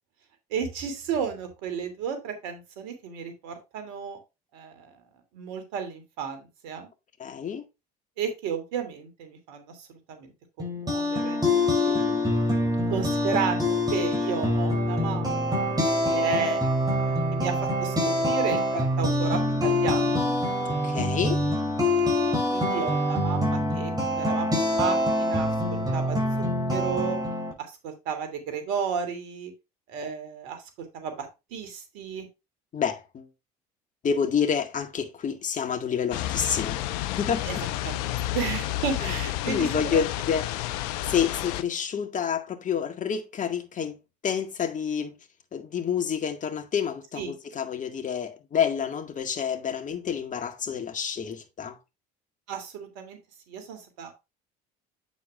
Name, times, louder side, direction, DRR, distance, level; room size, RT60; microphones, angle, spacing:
voice 1, 0.5-4.2 4.5-4.9 5.3-6.9 8.2-10.3 10.6-11.4 12.9-15.8 16.1-16.6 16.9-17.9 18.2-20.3 22.5-26.2 26.7-27.2 27.6-29.5 29.9-30.6 30.9-31.3 31.5-32.3 37.5-37.6 37.8-37.9 38.3-40.0 47.2-47.3 52.5-53.2 53.5-54.1, right 6 dB, 75° right, 2.8 m, -33 dB
voice 2, 7.2-7.7 11.8-12.2 20.7-21.4 32.7-33.3 34.0-36.8 37.1-37.4 39.0-39.1 39.5-40.7 41.1-44.0 44.2-45.1 45.5-51.8, left 7 dB, 40° left, 1.8 m, -28 dB
sound 1, 10.6-27.5, left 1 dB, 20° right, 5.1 m, -25 dB
sound 2, 36.1-41.6, left 14 dB, 75° left, 0.8 m, -30 dB
8.5 x 7.1 x 2.4 m
hypercardioid pair, 75°, 20 cm